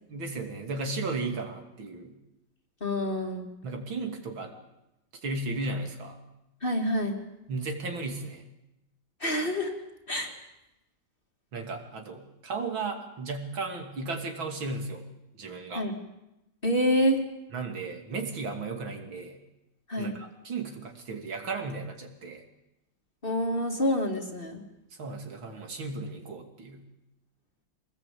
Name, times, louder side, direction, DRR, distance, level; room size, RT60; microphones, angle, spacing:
voice 1, 0.1-2.1 3.6-4.5 5.2-6.2 7.5-8.5 11.5-15.1 15.4-15.8 17.5-19.4 20.0-22.4 25.0-26.8, right 3 dB, 75° right, 4 dB, 3.5 m, -35 dB
voice 2, 2.8-3.5 6.6-7.2 9.2-9.7 10.1-10.3 15.7-16.0 16.6-17.2 19.9-20.2 23.2-24.6, equal, 25° left, 3 dB, 2.6 m, -27 dB
24.5 x 19.5 x 8.7 m, 0.91 s
omnidirectional pair, 2.2 m